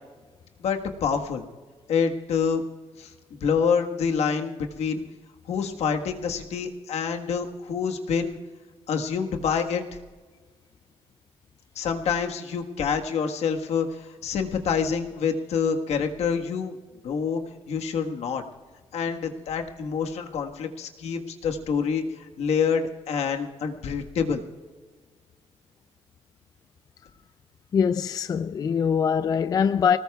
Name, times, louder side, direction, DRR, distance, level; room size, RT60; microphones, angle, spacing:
voice 1, 0.6-1.4 1.9-2.6 3.0-5.0 5.5-8.4 8.9-9.8 11.7-16.8 17.0-17.4 17.7-18.4 18.9-24.4, left 6 dB, 75° left, 1.5 m, -27 dB
voice 2, 27.7-30.0, left 7 dB, 35° left, 0.3 m, -23 dB
25.0 x 19.0 x 2.3 m
cardioid pair, 160°, 11 cm